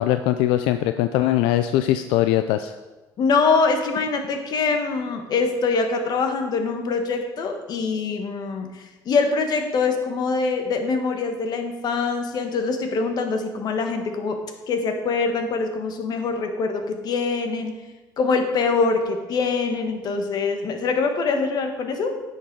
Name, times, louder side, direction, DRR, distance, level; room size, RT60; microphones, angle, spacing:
voice 1, 0.0-2.7, left 13 dB, 80° left, 10 dB, 0.4 m, -21 dB
voice 2, 3.2-14.4 14.7-17.7 18.2-22.2, left 4 dB, 50° left, 6 dB, 1.4 m, -24 dB
10.0 x 6.6 x 4.7 m, 1.2 s
cardioid pair, 110°, 9 cm